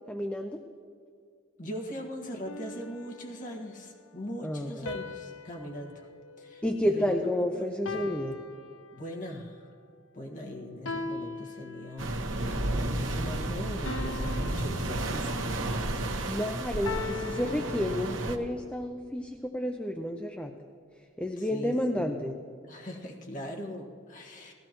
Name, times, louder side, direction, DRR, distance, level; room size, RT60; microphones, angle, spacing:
voice 1, 0.1-0.6 4.4-4.9 6.6-8.4 16.2-20.5 21.2-22.4, equal, 5° left, 4 dB, 0.5 m, -30 dB
voice 2, 1.6-6.1 6.4-7.1 7.5-8.1 8.9-9.7 10.1-15.6 15.9-16.4 21.4-22.1 22.7-24.5, equal, 45° left, 0 dB, 1.5 m, -41 dB
sound 1, 2.5-3.7 4.9-7.3 7.9-9.3 10.9-12.3 13.9-15.7 16.9-18.5, left 4 dB, 85° left, 0.6 m, -40 dB
sound 2, 12.0-18.4, right 1 dB, 90° right, 1.1 m, -32 dB
18.5 x 15.0 x 3.0 m, 2.3 s
head